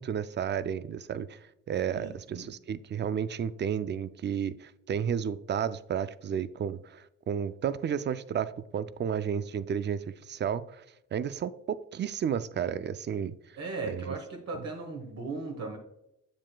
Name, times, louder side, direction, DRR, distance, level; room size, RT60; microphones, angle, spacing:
voice 1, 0.0-1.4 1.7-10.8 11.1-13.3 13.9-14.1, right 8 dB, 35° right, 14 dB, 0.4 m, -32 dB
voice 2, 1.9-2.5 13.6-15.8, right 3 dB, 60° right, 1 dB, 1.3 m, -37 dB
7.5 x 7.4 x 2.2 m, 0.83 s
cardioid pair, 90°, 30 cm